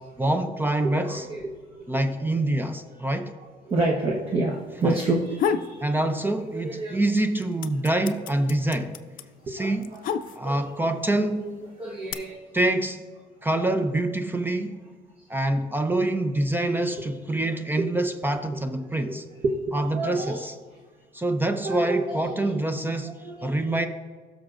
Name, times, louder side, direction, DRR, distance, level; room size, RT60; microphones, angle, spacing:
voice 1, 0.2-1.3 1.9-3.3 4.8-5.0 5.8-9.0 9.5-10.0 10.3-11.7 12.5-13.0 13.4-14.8 15.3-19.2 19.7-20.5 21.1-23.9, right 1 dB, 10° right, 7 dB, 0.5 m, -26 dB
voice 2, 0.8-1.9 3.7-7.0 9.4-9.7 10.4-10.6 11.8-12.4 19.1-19.2 19.4-20.4 21.6-22.3 23.1-23.5, right 2 dB, 35° right, -1 dB, 1.0 m, -29 dB
sound 1, 5.3-5.8 6.2-6.9 7.1-10.7 11.5-12.1, left 7 dB, 55° left, 0.5 m, -29 dB
17.0 x 6.4 x 2.5 m, 1.5 s
cardioid pair, 110°, 17 cm